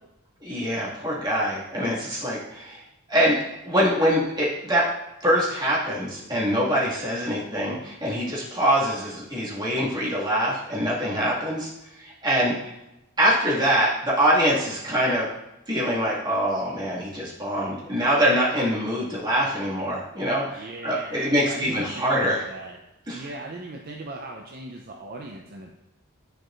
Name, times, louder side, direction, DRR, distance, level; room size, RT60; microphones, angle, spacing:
voice 1, 0.4-2.8 3.1-3.4 3.6-4.9 5.2-12.7 13.2-15.3 15.7-22.4 23.1-23.3, equal, 20° right, -8 dB, 1.9 m, -24 dB
voice 2, 20.5-22.8 23.1-25.7, right 2 dB, 45° right, 1 dB, 0.5 m, -38 dB
10.0 x 4.6 x 2.5 m, 0.92 s
head